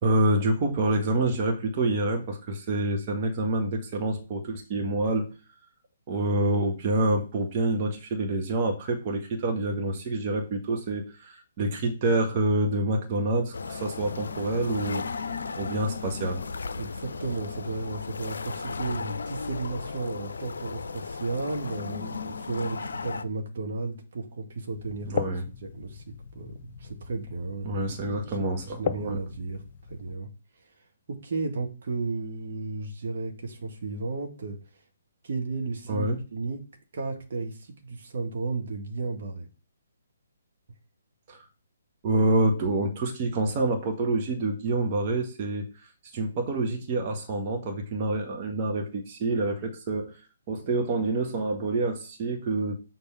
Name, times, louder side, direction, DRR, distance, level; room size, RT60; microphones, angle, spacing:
voice 1, 0.0-5.3 6.1-15.1 15.6-16.4 25.1-25.4 27.6-29.2 35.9-36.2 41.3-41.4 42.0-45.6 46.1-50.1 50.5-52.7, right 2 dB, 35° right, 2 dB, 1.6 m, -27 dB
sound 1, 13.5-23.2, left 4 dB, 65° left, 0.6 m, -35 dB
voice 2, 16.8-25.3 25.6-27.9 28.2-29.6 29.9-30.3 31.1-34.8 35.2-36.6 36.9-39.5, right 3 dB, 50° right, 3 dB, 1.7 m, -34 dB
sound 2, 24.7-30.2, left 6 dB, 40° left, 0.9 m, -37 dB
6.9 x 4.0 x 5.6 m, 0.34 s
figure-of-eight pair, 135°, 0 cm